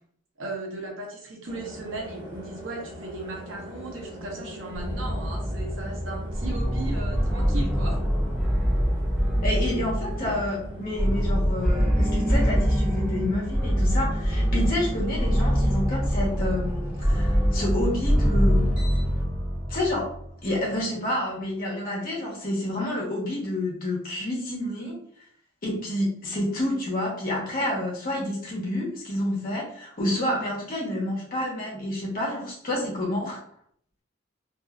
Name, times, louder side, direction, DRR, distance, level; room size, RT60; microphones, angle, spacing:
voice 1, 0.4-8.0, right 2 dB, 75° right, -1 dB, 0.8 m, -37 dB
sound 1, 1.5-19.2, left 1 dB, 35° right, 1.4 m, -42 dB
sound 2, 4.8-20.4, equal, ahead, 0.5 m, -24 dB
voice 2, 9.4-18.8 19.7-20.1 20.4-25.0 25.6-33.4, left 1 dB, 45° left, -5 dB, 1.0 m, -29 dB
2.6 x 2.4 x 2.3 m, 0.64 s
head